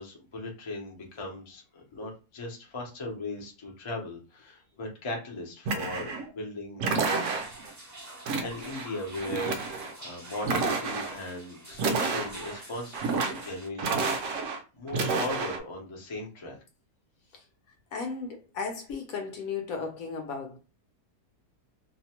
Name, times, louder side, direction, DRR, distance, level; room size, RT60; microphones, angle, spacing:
voice 1, 0.0-7.2 8.4-14.3 14.7-16.6, left 2 dB, 30° left, 0.5 m, -38 dB
sound 1, 5.7-6.3 6.8-7.7 8.3-8.9 9.2-9.9 10.4-11.2 11.7-12.6 12.9-13.5 13.8-14.6 14.9-15.6, right 4 dB, 65° right, 0.8 m, -30 dB
sound 2, 7.1-13.7, right 1 dB, 20° right, 0.5 m, -46 dB
voice 2, 17.9-20.6, left 5 dB, 65° left, 1.0 m, -35 dB
2.8 x 2.1 x 2.9 m
omnidirectional pair, 1.7 m